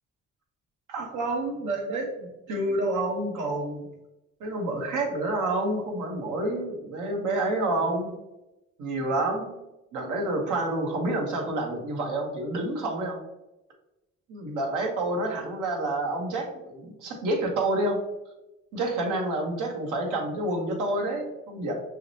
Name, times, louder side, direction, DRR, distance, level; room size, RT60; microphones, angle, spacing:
voice 1, 0.9-3.9 4.4-8.1 8.8-9.6 9.9-13.2 14.3-18.0 18.7-21.7, right 2 dB, 90° right, 1 dB, 1.1 m, -28 dB
6.2 x 2.1 x 2.7 m, 0.94 s
cardioid pair, 90°, 30 cm